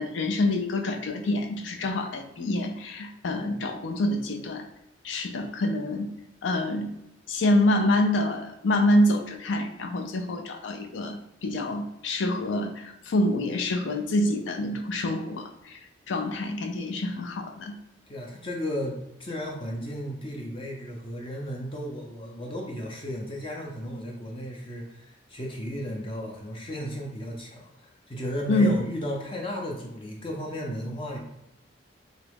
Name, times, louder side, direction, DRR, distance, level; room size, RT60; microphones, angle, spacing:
voice 1, 0.0-4.7 5.0-6.1 6.4-6.9 7.3-15.8 16.1-17.8 28.5-28.7, left 1 dB, 80° left, 5 dB, 0.4 m, -26 dB
voice 2, 18.1-31.2, equal, 30° left, -1 dB, 0.5 m, -34 dB
3.0 x 2.3 x 3.3 m, 0.87 s
head